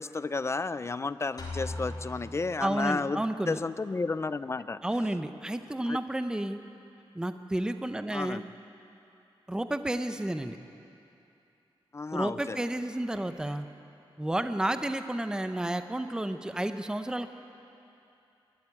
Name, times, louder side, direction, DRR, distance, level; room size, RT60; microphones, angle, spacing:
voice 1, 0.0-4.8 5.8-6.0 8.1-8.4 11.9-12.6, left 3 dB, 30° left, 14 dB, 0.5 m, -32 dB
sound 1, 1.4-3.2, left 2 dB, 45° left, 4.1 m, -39 dB
voice 2, 2.6-3.6 4.8-6.6 7.1-8.4 9.5-10.6 12.1-13.7 14.2-17.3, right 1 dB, 10° right, 9 dB, 0.7 m, -31 dB
21.0 x 13.5 x 9.8 m, 2.8 s
wide cardioid pair, 145°, 9 cm